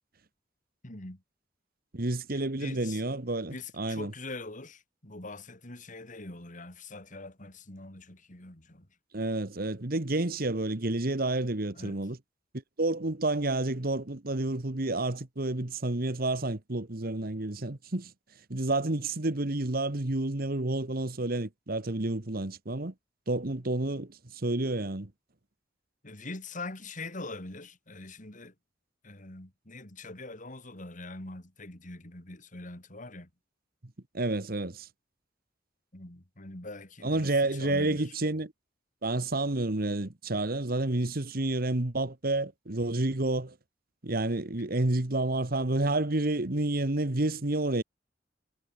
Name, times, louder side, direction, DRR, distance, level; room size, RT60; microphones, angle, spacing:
voice 1, 0.8-1.2 2.3-3.0 3.5-8.9 11.7-12.0 17.5-17.6 26.0-28.5 29.0-33.3 35.9-38.2, left 2 dB, 45° left, 3.4 m, -43 dB
voice 2, 1.9-4.1 9.1-12.2 12.8-18.1 18.5-22.9 23.3-25.1 34.1-34.9 37.0-38.5 39.0-43.6 44.0-47.8, right 2 dB, 55° right, 1.6 m, -30 dB
head